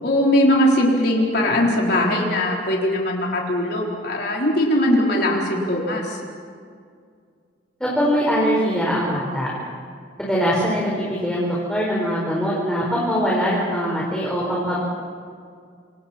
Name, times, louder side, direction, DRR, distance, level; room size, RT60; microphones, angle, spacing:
voice 1, 0.0-6.2, left 1 dB, 60° left, -2 dB, 4.2 m, -20 dB
voice 2, 7.8-9.5 10.2-14.8, equal, 5° left, -6 dB, 4.9 m, -22 dB
28.0 x 26.5 x 4.4 m, 2.2 s
head